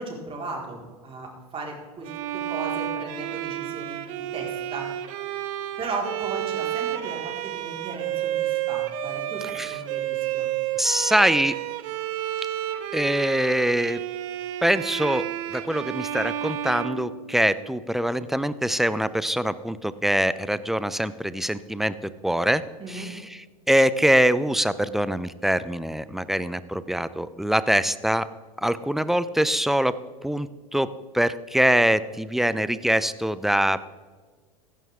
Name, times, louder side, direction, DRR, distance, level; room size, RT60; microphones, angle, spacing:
voice 1, 0.0-4.9 5.8-10.5 22.8-23.2, right 3 dB, 30° right, -1 dB, 4.5 m, -36 dB
Bowed string instrument, 2.0-17.8, right 12 dB, 60° right, 1.1 m, -31 dB
voice 2, 10.8-11.6 12.9-14.0 14.6-22.6 22.9-23.2 23.7-28.3 28.6-30.0 30.2-33.8, right 1 dB, ahead, 15 dB, 0.5 m, -23 dB
15.5 x 11.5 x 3.7 m, 1.4 s
hypercardioid pair, 95°, 19 cm